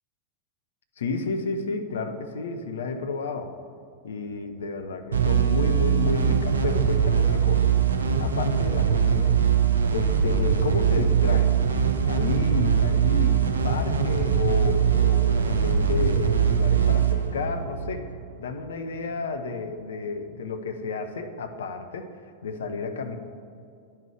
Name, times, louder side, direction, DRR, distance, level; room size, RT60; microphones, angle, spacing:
voice 1, 1.0-3.5 4.0-7.6 8.2-9.4 9.9-11.6 12.0-18.1 18.4-22.1 22.4-23.2, left 4 dB, 65° left, 7 dB, 0.6 m, -31 dB
sound 1, 5.1-18.4, right 7 dB, 70° right, 0.6 m, -22 dB
10.5 x 5.6 x 3.3 m, 2.4 s
figure-of-eight pair, 90°, 0 cm